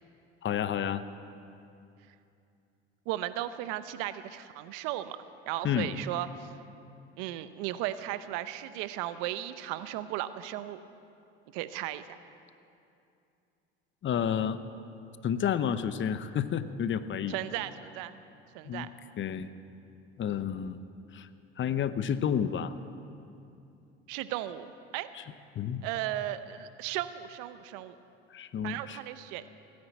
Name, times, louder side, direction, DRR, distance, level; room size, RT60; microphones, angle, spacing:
voice 1, 0.4-1.0 5.6-5.9 14.0-14.6 15.2-17.4 18.6-18.9 19.2-19.5 20.2-20.8 21.1-21.3 21.6-22.7 25.1-25.2 25.6-25.8 28.3-29.0, left 8 dB, 35° left, 13 dB, 0.8 m, -30 dB
voice 2, 3.1-5.2 5.5-6.5 7.2-10.8 11.5-12.0 17.3-18.2 18.5-18.9 24.1-25.1 25.8-27.9 28.6-29.5, right 14 dB, 70° right, 13 dB, 0.8 m, -35 dB
17.0 x 9.8 x 8.2 m, 2.6 s
hypercardioid pair, 75°, 32 cm